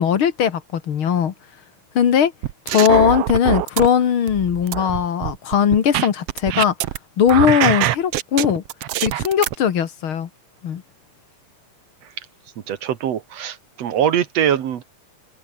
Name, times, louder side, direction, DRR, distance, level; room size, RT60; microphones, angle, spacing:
voice 1, 0.0-1.3 2.0-2.3 2.7-6.7 7.2-8.6 9.0-10.3 10.6-10.8, left 8 dB, 50° left, 1.8 m, -19 dB
sound 1, 2.4-3.9 4.3-7.0 7.3-9.5, right 14 dB, 85° right, 1.3 m, -23 dB
voice 2, 12.7-14.8, right 9 dB, 60° right, 2.2 m, -22 dB
open air
omnidirectional pair, 3.9 m